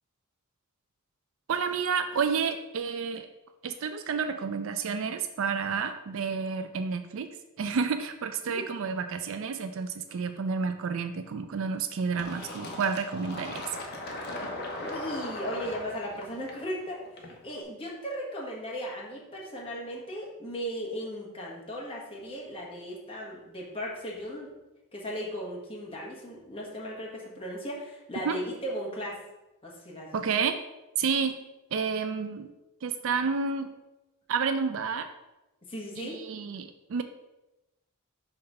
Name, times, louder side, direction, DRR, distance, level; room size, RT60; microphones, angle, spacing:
voice 1, 1.5-3.3 3.6-7.3 7.6-13.7 28.3-28.4 30.1-30.6 31.0-31.4 31.7-32.5 32.8-33.7 34.3-35.1 36.0-37.0, right 5 dB, 60° right, 8 dB, 0.4 m, -30 dB
Fill (with liquid), 12.2-17.6, left 1 dB, 50° left, 1.0 m, -39 dB
voice 2, 14.8-24.5 24.9-29.2 29.6-30.1 35.6-36.2, equal, 25° left, -3 dB, 1.3 m, -37 dB
5.7 x 3.3 x 5.4 m, 1.0 s
head